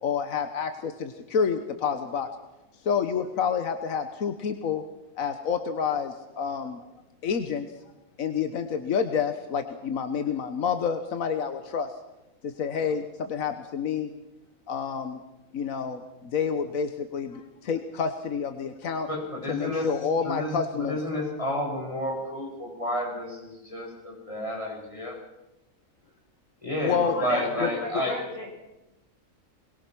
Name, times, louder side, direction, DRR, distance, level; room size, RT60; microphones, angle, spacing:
voice 1, 0.0-2.3 2.8-4.8 5.2-6.9 7.2-7.7 8.2-11.9 12.4-14.1 14.7-15.2 15.5-19.1 19.5-21.0 26.8-27.1 27.6-27.7, left 6 dB, 85° left, 8 dB, 1.5 m, -28 dB
voice 2, 19.1-19.9 20.2-25.1 26.6-28.1, left 1 dB, 25° left, 0 dB, 5.8 m, -31 dB
voice 3, 27.1-28.5, left 1 dB, 65° left, -1 dB, 6.9 m, -33 dB
22.5 x 21.5 x 6.0 m, 0.97 s
omnidirectional pair, 1.4 m